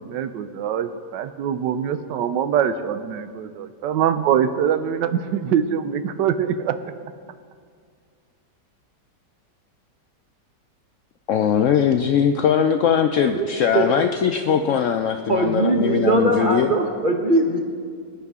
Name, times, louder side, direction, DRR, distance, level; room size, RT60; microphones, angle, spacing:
voice 1, 0.0-6.8, right 8 dB, 85° right, 11 dB, 1.3 m, -23 dB
voice 2, 11.3-16.7, left 8 dB, 85° left, 6 dB, 0.6 m, -20 dB
voice 3, 15.3-17.6, right 2 dB, 35° right, 3 dB, 0.9 m, -20 dB
19.5 x 9.0 x 3.6 m, 2.1 s
omnidirectional pair, 1.9 m